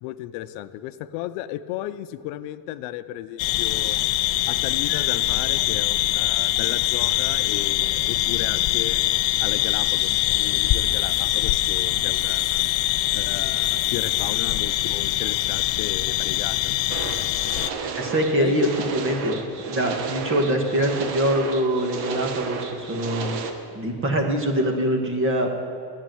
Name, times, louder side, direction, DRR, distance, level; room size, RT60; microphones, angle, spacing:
voice 1, 0.0-4.0 4.5-9.0 9.4-12.6 13.1-16.7 18.4-18.7, left 14 dB, 85° left, 12 dB, 0.8 m, -34 dB
sound 1, 3.4-17.7, left 15 dB, 50° left, 0.5 m, -23 dB
sound 2, 16.9-23.5, right 5 dB, 80° right, 1.5 m, -32 dB
voice 2, 17.8-19.4 19.7-23.4 23.7-25.5, right 1 dB, 25° right, 3 dB, 1.6 m, -24 dB
14.5 x 7.5 x 9.2 m, 2.4 s
cardioid pair, 160°, 49 cm